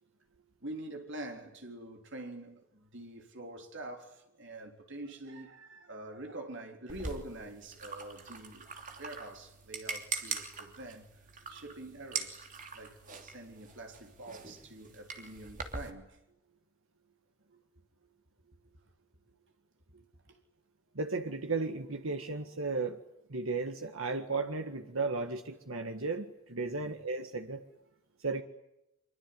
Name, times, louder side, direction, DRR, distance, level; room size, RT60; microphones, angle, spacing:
voice 1, 0.6-8.7 9.0-11.1 11.5-12.5 12.7-16.2 20.3-20.4 26.8-27.0, right 2 dB, 60° right, 3.8 m, -45 dB
sound 1, 6.9-15.9, right 5 dB, 40° right, 3.1 m, -42 dB
voice 2, 20.9-23.0 23.3-27.6 28.2-28.4, right 3 dB, 75° right, 1.7 m, -35 dB
25.5 x 24.0 x 9.6 m
head